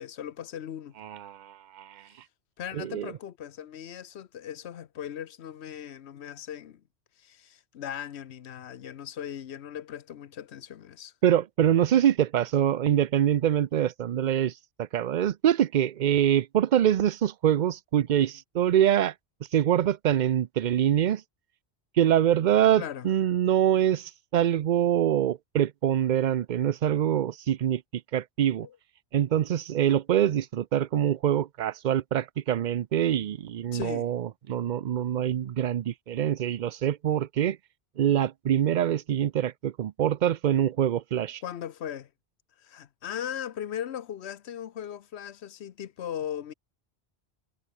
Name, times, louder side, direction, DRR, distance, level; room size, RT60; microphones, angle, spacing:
voice 1, 0.0-1.0 2.6-6.8 7.2-11.1 22.8-23.1 28.6-28.8 33.7-34.1 41.4-42.1 42.6-46.5, left 10 dB, 75° left, 1.1 m, -38 dB
voice 2, 1.0-2.0 2.7-3.1 11.2-14.5 14.8-19.1 19.5-21.2 22.0-27.8 28.1-28.7 29.1-37.6 38.0-41.4, right 10 dB, 55° right, 0.6 m, -24 dB
omnidirectional pair, 1.1 m